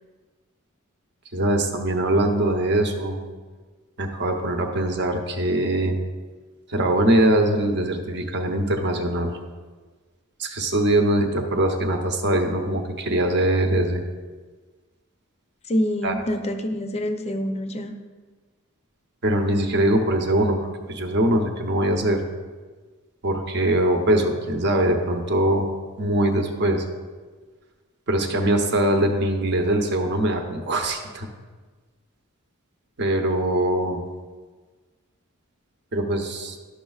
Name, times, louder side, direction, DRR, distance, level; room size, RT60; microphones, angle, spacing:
voice 1, 1.3-3.2 4.0-5.9 6.7-9.3 10.4-14.0 16.0-16.1 19.2-20.6 20.9-22.2 23.2-25.7 26.0-26.8 28.1-31.3 33.0-34.0 35.9-36.6, right 1 dB, 50° right, 4 dB, 0.8 m, -22 dB
voice 2, 15.7-18.0, equal, 30° left, 6 dB, 0.6 m, -26 dB
12.0 x 6.1 x 2.4 m, 1.4 s
head